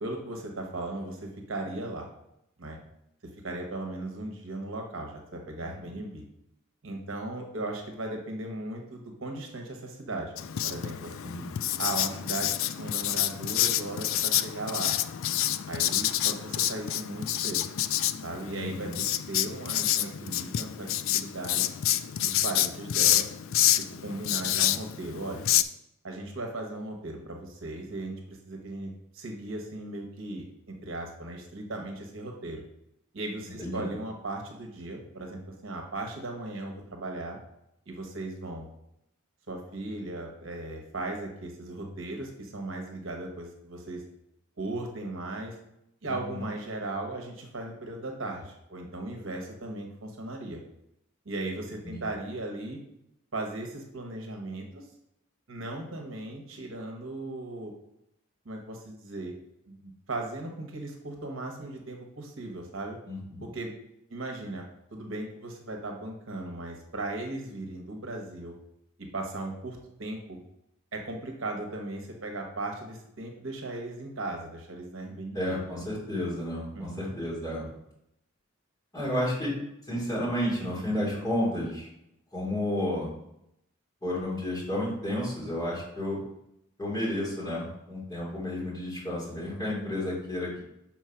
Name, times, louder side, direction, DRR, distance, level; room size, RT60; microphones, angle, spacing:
voice 1, 0.0-2.1 2.6-2.8 3.2-6.2 6.8-10.3 10.6-11.3 11.8-14.9 15.7-17.6 18.2-21.7 22.2-23.3 23.7-25.4 26.0-32.6 33.1-37.4 37.9-38.7 39.5-44.0 44.6-45.5 46.0-50.6 51.2-52.8 53.3-54.9 55.5-57.7 58.4-59.4 59.7-63.0 63.4-63.7 64.1-64.6 64.9-68.5 69.0-70.4 70.9-75.6 76.7-77.1, right 2 dB, 65° right, 2 dB, 1.1 m, -37 dB
voice 2, 5.6-5.9 11.2-11.5 18.5-19.0 33.6-33.9 46.0-46.4 51.8-52.0 63.1-63.4 75.3-77.7 78.9-79.5 79.8-81.9 82.3-83.1 84.0-86.2 86.8-90.6, left 1 dB, 15° left, -6 dB, 3.0 m, -31 dB
Writing, 10.4-25.6, left 12 dB, 65° left, 0.3 m, -28 dB
6.3 x 4.4 x 5.7 m, 0.80 s
head